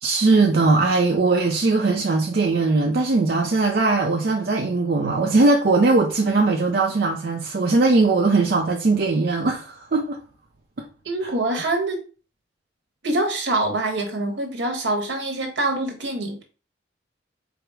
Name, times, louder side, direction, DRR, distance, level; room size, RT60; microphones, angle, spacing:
voice 1, 0.0-10.2 11.2-11.3, right 3 dB, 55° right, 0.5 m, -20 dB
voice 2, 11.0-12.0 13.0-16.4, right 2 dB, 75° right, 1.2 m, -25 dB
4.8 x 2.0 x 4.7 m
head